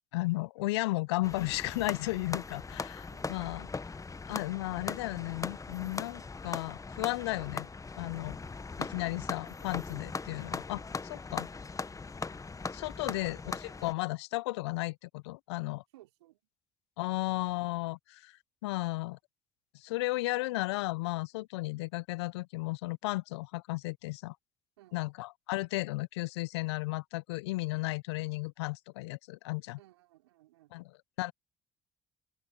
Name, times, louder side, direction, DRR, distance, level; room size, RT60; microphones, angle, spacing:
voice 1, 0.1-3.7 4.3-7.7 8.0-8.4 8.8-11.5 12.7-15.8 17.0-18.4 18.6-19.2 19.7-24.4 24.9-29.8 30.7-30.8 31.2-31.3, left 21 dB, 80° left, 0.8 m, -34 dB
sound 1, 1.2-13.9, left 4 dB, 25° left, 1.2 m, -40 dB
voice 2, 3.1-3.6 15.9-16.4 24.8-25.0 29.8-30.8, right 16 dB, 80° right, 4.4 m, -60 dB
open air
hypercardioid pair, 50°, 14 cm